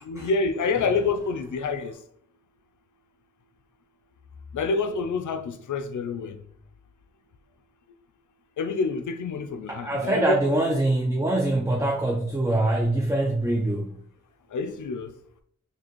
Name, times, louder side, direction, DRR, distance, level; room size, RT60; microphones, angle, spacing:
voice 1, 0.0-2.0 4.5-6.4 8.6-10.4 14.5-15.1, left 4 dB, 90° left, 0.5 m, -27 dB
voice 2, 9.7-14.0, right 1 dB, 10° right, 0.5 m, -24 dB
4.1 x 2.8 x 3.0 m
wide cardioid pair, 105°, 30 cm